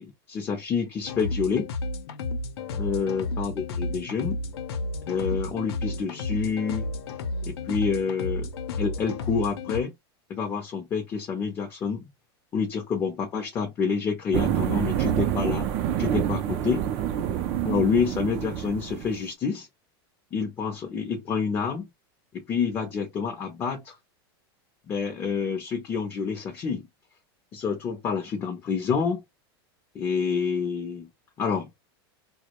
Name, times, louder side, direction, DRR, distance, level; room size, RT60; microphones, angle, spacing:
voice 1, 0.0-1.7 2.7-4.4 5.1-6.9 7.4-8.5 8.8-9.9 10.3-12.1 12.5-15.7 16.0-16.9 17.6-19.7 20.3-21.9 22.3-24.0 24.9-26.9 27.5-29.2 29.9-31.1 31.4-31.7, left 6 dB, 20° left, 0.5 m, -28 dB
sound 1, 1.0-9.8, left 2 dB, 85° left, 0.7 m, -32 dB
sound 2, 14.3-19.2, right 10 dB, 35° right, 0.4 m, -27 dB
2.1 x 2.0 x 2.9 m
supercardioid pair, 160°, 13 cm